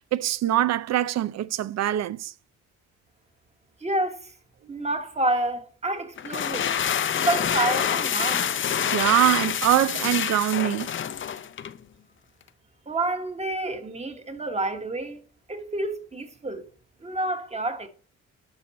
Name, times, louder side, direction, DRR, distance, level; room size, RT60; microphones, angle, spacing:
voice 1, 0.1-2.3 8.9-10.9, right 12 dB, 60° right, 0.6 m, -23 dB
voice 2, 3.8-4.3 4.7-6.8 7.2-8.5 12.9-15.2 15.5-16.7 17.0-17.9, right 2 dB, 20° right, 1.5 m, -29 dB
sound 1, 6.2-11.8, left 8 dB, 40° left, 0.6 m, -26 dB
10.5 x 6.0 x 4.2 m
cardioid pair, 90°, 30 cm